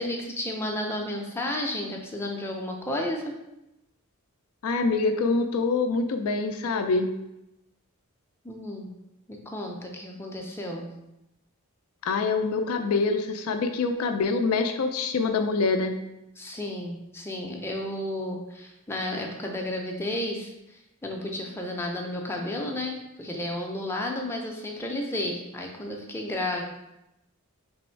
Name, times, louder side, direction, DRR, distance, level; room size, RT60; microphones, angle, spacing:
voice 1, 0.0-3.3 8.4-8.9 9.3-10.9 16.4-26.6, left 1 dB, 10° left, 0 dB, 0.5 m, -32 dB
voice 2, 4.6-7.1 12.1-16.0, left 4 dB, 70° left, 6 dB, 0.4 m, -25 dB
3.4 x 3.1 x 4.4 m, 0.90 s
head